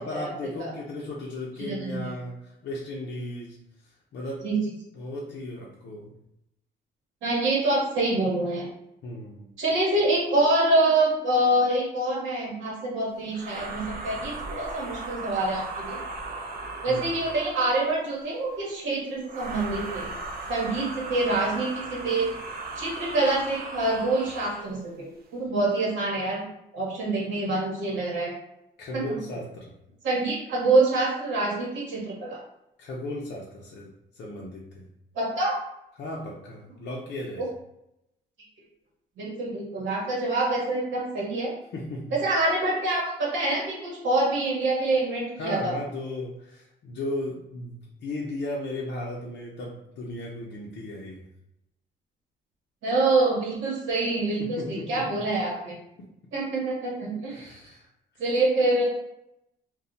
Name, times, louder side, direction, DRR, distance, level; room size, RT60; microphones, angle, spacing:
voice 1, 0.0-3.6 4.1-4.5 4.9-6.2 9.0-9.5 16.9-17.2 28.8-29.7 32.8-34.9 36.0-37.5 41.7-42.2 45.4-51.2 54.4-55.0 56.0-56.1 57.3-57.9 58.1-58.2, left 1 dB, 60° left, -3 dB, 0.6 m, -36 dB
voice 2, 1.6-2.1 4.4-4.6 7.2-8.7 9.6-16.0 16.8-20.1 20.5-22.3 22.8-26.4 26.7-28.3 28.9-29.2 30.0-32.4 35.1-35.6 37.4-37.5 39.2-41.5 42.1-45.8 52.8-55.7 56.3-57.6 58.2-58.8, right 2 dB, 75° right, -4 dB, 1.0 m, -26 dB
sound 1, 13.3-17.9 19.2-24.7, right 3 dB, 50° right, 0.5 m, -37 dB
2.2 x 2.0 x 3.8 m, 0.82 s
cardioid pair, 90°, 20 cm